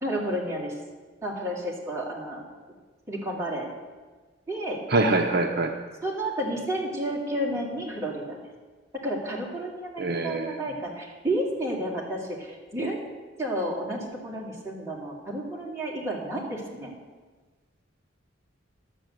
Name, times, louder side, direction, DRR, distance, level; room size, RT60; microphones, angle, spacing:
voice 1, 0.0-0.7 1.2-2.4 3.1-3.7 4.5-4.8 6.0-8.4 9.0-13.0 13.4-16.9, right 1 dB, 15° right, -4 dB, 2.7 m, -31 dB
voice 2, 4.9-5.7 10.0-10.5, right 2 dB, 55° right, 3 dB, 0.8 m, -24 dB
11.5 x 7.5 x 7.8 m, 1.3 s
head